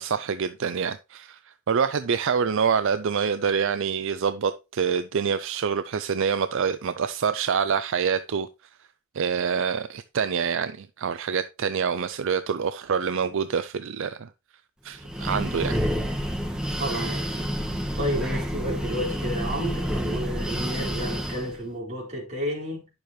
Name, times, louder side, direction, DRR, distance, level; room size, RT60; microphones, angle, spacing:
voice 1, 0.0-8.5 9.1-14.3 14.8-15.7, right 6 dB, 65° right, 0.5 m, -26 dB
Breathing, 14.9-21.6, equal, 5° right, 1.6 m, -29 dB
voice 2, 16.8-17.5 18.0-22.9, equal, 35° right, 4.9 m, -31 dB
10.5 x 6.9 x 3.1 m
head